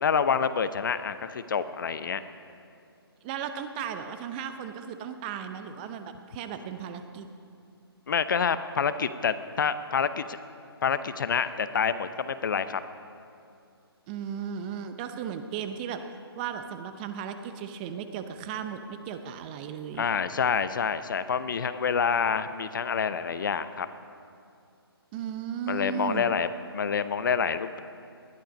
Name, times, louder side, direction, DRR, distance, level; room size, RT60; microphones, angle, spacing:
voice 1, 0.0-2.2 8.1-10.4 10.8-12.8 20.0-23.9 25.7-27.8, left 6 dB, 50° left, 12 dB, 0.7 m, -27 dB
voice 2, 3.2-7.3 14.1-16.0 16.4-20.1 25.1-26.3, right 8 dB, 20° right, 9 dB, 0.7 m, -36 dB
20.0 x 12.5 x 5.3 m, 2.5 s
figure-of-eight pair, 145°, 13 cm